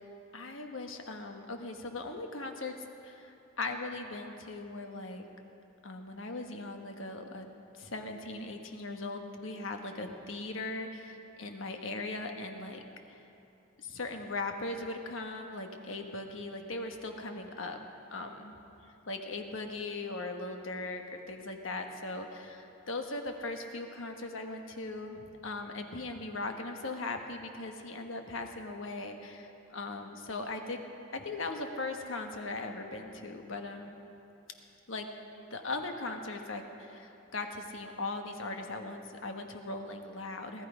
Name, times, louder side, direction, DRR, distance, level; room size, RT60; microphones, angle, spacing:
voice 1, 0.3-2.8 3.0-5.3 5.8-7.5 7.8-12.8 13.8-17.8 18.1-18.5 19.1-30.8 31.1-34.0 34.9-35.1 35.5-40.7, left 2 dB, 80° left, 4 dB, 1.3 m, -39 dB
19.0 x 13.5 x 5.0 m, 2.8 s
head